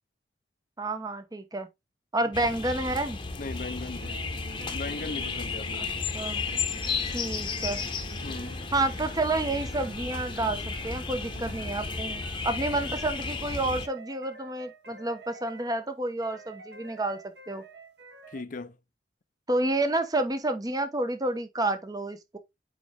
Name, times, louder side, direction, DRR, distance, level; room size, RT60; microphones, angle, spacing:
voice 1, 0.8-1.7 2.1-3.2 5.7-5.9 6.1-6.4 7.1-7.8 8.7-17.2 17.5-17.6 19.5-22.4, right 2 dB, 20° right, 1.0 m, -29 dB
sound 1, 2.3-13.9, left 4 dB, 30° left, 1.0 m, -33 dB
voice 2, 3.4-4.2 4.7-5.9 8.2-8.6 18.3-18.8, left 3 dB, 50° left, 0.6 m, -38 dB
sound 2, 4.0-15.9 16.2-18.4, right 2 dB, 70° right, 1.7 m, -48 dB
6.9 x 4.8 x 3.4 m
head